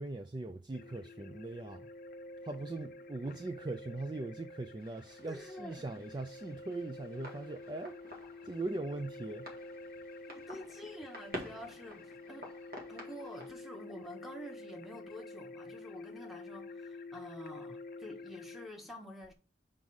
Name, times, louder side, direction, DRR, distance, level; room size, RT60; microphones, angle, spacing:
voice 1, 0.0-1.9 2.4-9.5, right 2 dB, 25° right, 0.4 m, -40 dB
sound 1, 0.7-18.7, left 2 dB, 45° left, 0.5 m, -49 dB
sound 2, 4.8-13.5, equal, 50° right, 1.9 m, -50 dB
voice 2, 5.3-5.9 10.3-12.5 12.9-19.3, left 1 dB, ahead, 1.3 m, -48 dB
5.4 x 5.1 x 6.2 m
head